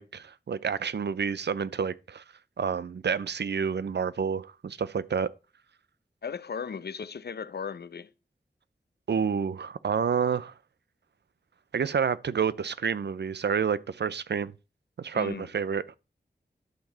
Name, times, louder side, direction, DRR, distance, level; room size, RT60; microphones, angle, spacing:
voice 1, 0.0-2.2 2.6-5.3 9.1-10.5 11.7-14.5 15.0-16.0, right 6 dB, 85° right, 0.6 m, -29 dB
voice 2, 6.2-8.1 15.1-15.5, left 6 dB, 75° left, 0.6 m, -36 dB
11.5 x 6.0 x 4.3 m
wide cardioid pair, 55°, 17 cm